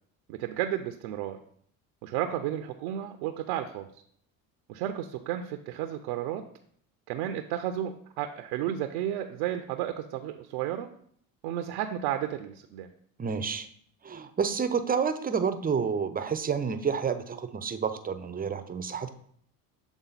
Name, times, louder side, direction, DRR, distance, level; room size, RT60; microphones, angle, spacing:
voice 1, 0.3-1.4 2.0-3.9 4.7-6.4 7.1-10.9 11.4-12.9, right 11 dB, 75° right, 7 dB, 0.6 m, -32 dB
voice 2, 13.2-13.7 14.0-19.1, right 6 dB, 20° right, 10 dB, 0.6 m, -29 dB
7.1 x 3.6 x 4.0 m, 0.63 s
hypercardioid pair, 70°, 44 cm